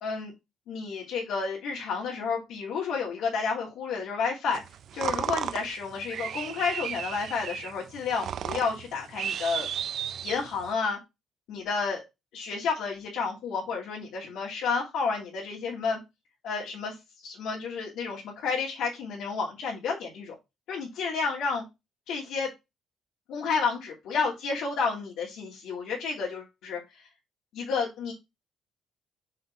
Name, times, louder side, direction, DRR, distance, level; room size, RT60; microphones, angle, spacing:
voice 1, 0.0-0.3 0.7-4.6 4.9-9.7 10.2-11.0 11.5-12.0 12.3-16.0 16.4-16.9 17.2-20.4 20.7-21.6 22.1-22.5 23.3-26.8 27.5-28.1, left 5 dB, 75° left, 2.6 m, -31 dB
sound 1, 4.5-10.7, right 9 dB, 45° right, 0.5 m, -34 dB
6.6 x 4.3 x 4.2 m
cardioid pair, 170°, 0 cm